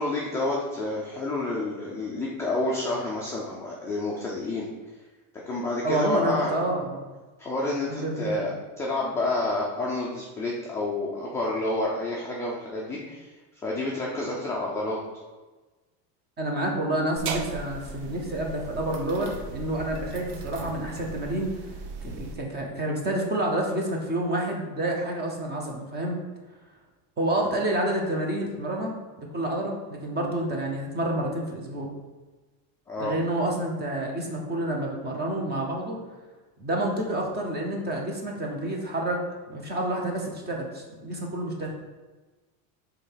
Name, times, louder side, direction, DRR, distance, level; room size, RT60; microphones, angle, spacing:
voice 1, 0.0-4.7 5.5-6.5 7.4-8.5 8.8-13.3 13.6-15.0 32.9-33.2, left 2 dB, 5° left, -5 dB, 0.3 m, -29 dB
voice 2, 5.8-7.1 7.9-8.5 16.4-21.7 22.0-26.2 27.2-28.9 29.3-31.9 33.0-36.0 36.6-41.8, right 1 dB, 20° right, 1 dB, 1.0 m, -29 dB
sound 1, 17.2-22.4, right 4 dB, 85° right, 0.8 m, -37 dB
5.2 x 3.5 x 5.6 m, 1.3 s
cardioid pair, 150°, 48 cm